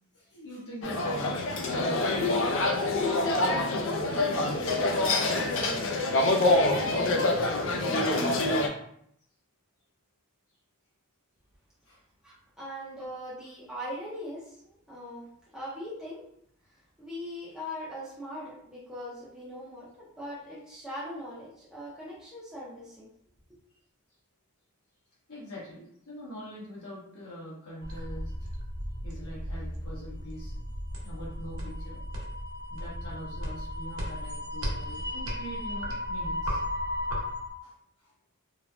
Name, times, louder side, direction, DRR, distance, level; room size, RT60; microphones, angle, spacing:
voice 1, 0.1-2.5 3.0-5.5 6.4-8.5 11.8-12.0 25.3-28.5 29.0-30.5 31.0-32.0 32.7-36.6 37.6-37.7 38.0-38.1, equal, 90° left, -6 dB, 1.1 m, -43 dB
sound 1, 0.8-8.7, left 2 dB, 60° left, 0.4 m, -26 dB
voice 2, 12.2-15.3 15.5-16.2 17.0-23.1, equal, 5° right, -9 dB, 0.6 m, -40 dB
sound 2, 27.8-37.5, left 1 dB, 80° right, 0.8 m, -35 dB
3.1 x 2.1 x 2.5 m, 0.69 s
head